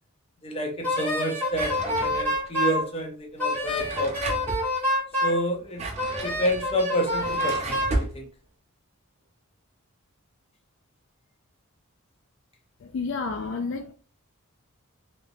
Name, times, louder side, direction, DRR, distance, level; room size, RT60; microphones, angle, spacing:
voice 1, 0.4-4.4 5.2-5.9 6.2-8.3, equal, 25° left, 2 dB, 0.7 m, -29 dB
Wind instrument woodwind instrument, 0.8-2.8 3.4-5.4 6.0-8.0, left 1 dB, 10° left, 1.2 m, -27 dB
Drawer open or close, 1.5-2.5 3.5-4.7 5.5-8.2, right 2 dB, 30° right, 0.6 m, -33 dB
voice 2, 12.8-13.9, left 4 dB, 55° left, 5 dB, 0.3 m, -30 dB
3.4 x 2.8 x 2.6 m, 0.37 s
head